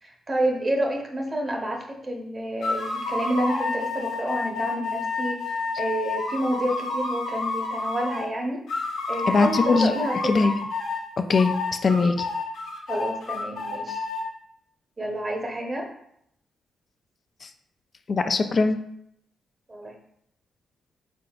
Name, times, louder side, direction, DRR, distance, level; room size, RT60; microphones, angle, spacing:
voice 1, 0.0-8.6 9.1-10.5 12.9-14.0 15.0-15.9 19.7-19.9, right 1 dB, 35° right, 1 dB, 0.8 m, -29 dB
sound 1, 2.6-8.3 8.7-11.0 11.3-14.2, left 3 dB, 80° left, 0.8 m, -29 dB
voice 2, 9.3-9.9 10.2-10.5 11.2-11.6 11.8-12.3 18.1-18.8, left 4 dB, 50° left, 7 dB, 0.3 m, -21 dB
3.7 x 3.5 x 2.3 m, 0.72 s
supercardioid pair, 55°, 0 cm